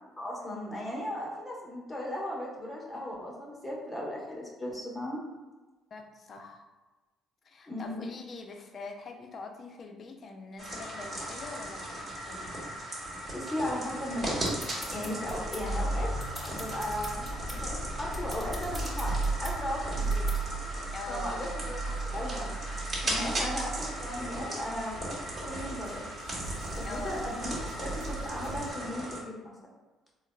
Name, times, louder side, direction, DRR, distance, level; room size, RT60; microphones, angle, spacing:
voice 1, 0.2-5.2 7.7-8.0 13.3-14.4 14.9-16.1 16.4-19.1 19.4-20.3 21.1-22.5 23.0-25.0 25.4-26.0 26.7-29.5, left 1 dB, 15° left, -3 dB, 1.1 m, -36 dB
voice 2, 5.9-6.7 7.4-12.6 20.9-21.5 23.2-23.5 26.8-27.3, left 3 dB, 50° left, 4 dB, 0.5 m, -43 dB
sound 1, 10.6-29.2, right 1 dB, 35° right, 1.3 m, -37 dB
sound 2, 14.1-15.8 16.1-17.6 18.1-19.6 20.1-20.4, equal, 5° right, 0.9 m, -44 dB
sound 3, 15.3-28.7, right 2 dB, 75° right, 0.4 m, -36 dB
3.8 x 2.3 x 2.3 m, 1.2 s
hypercardioid pair, 50°, 0 cm